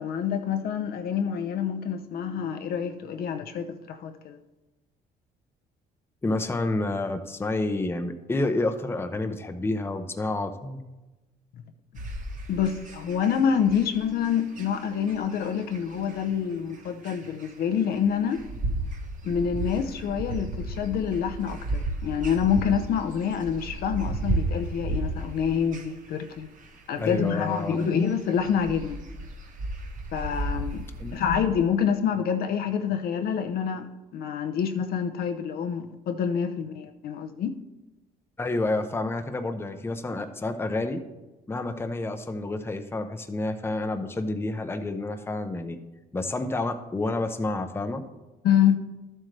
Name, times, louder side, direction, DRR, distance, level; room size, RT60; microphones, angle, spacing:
voice 1, 0.0-4.4 12.5-18.4 19.2-26.5 26.9-29.0 30.1-30.9 31.1-33.9 34.1-37.6 48.4-48.8, left 7 dB, 65° left, 0.8 m, -27 dB
voice 2, 6.2-10.8 27.0-27.8 31.0-31.2 38.4-41.0 41.5-45.8 46.1-48.0, left 2 dB, 15° left, 0.7 m, -29 dB
sound 1, 12.0-31.4, right 2 dB, 50° right, 1.4 m, -34 dB
12.0 x 7.5 x 3.3 m
cardioid pair, 110°, 17 cm